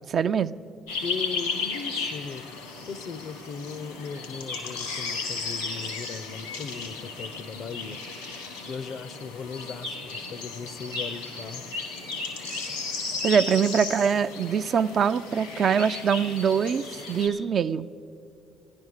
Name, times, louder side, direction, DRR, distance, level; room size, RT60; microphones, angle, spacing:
voice 1, 0.1-0.6 13.2-17.9, right 7 dB, 50° right, 11 dB, 0.4 m, -23 dB
sound 1, 0.9-17.3, left 4 dB, 85° left, 1.4 m, -35 dB
voice 2, 1.0-2.5 2.9-8.0 8.6-11.6 12.7-12.8, left 5 dB, 55° left, 16 dB, 0.5 m, -38 dB
15.0 x 10.5 x 6.4 m, 2.6 s
hypercardioid pair, 50°, 0 cm